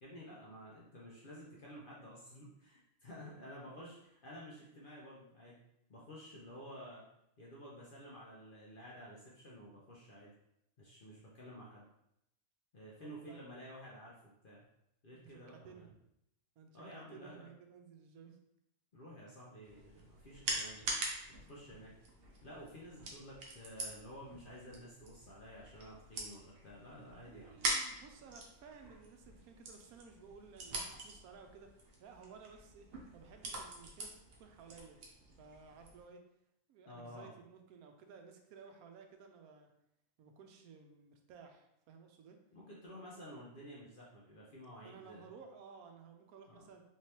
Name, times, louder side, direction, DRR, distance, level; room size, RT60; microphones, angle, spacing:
voice 1, 0.0-5.6 5.9-7.0 7.4-10.3 10.8-11.9 12.7-14.2 14.4-14.7 15.0-15.8 16.7-17.5 18.9-20.9 21.3-21.9 22.4-27.6 36.9-37.3 42.5-45.3 46.5-46.7, equal, 50° left, -5 dB, 0.6 m, -52 dB
voice 2, 13.0-13.4 15.1-15.9 16.6-18.4 21.3-21.5 27.2-31.7 32.0-35.0 35.3-36.2 36.7-39.7 40.2-42.4 44.8-46.8, right 5 dB, 80° right, 4 dB, 1.0 m, -56 dB
sound 1, 19.6-36.0, right 2 dB, 55° right, 0.8 m, -44 dB
3.3 x 3.2 x 2.8 m, 0.80 s
omnidirectional pair, 1.5 m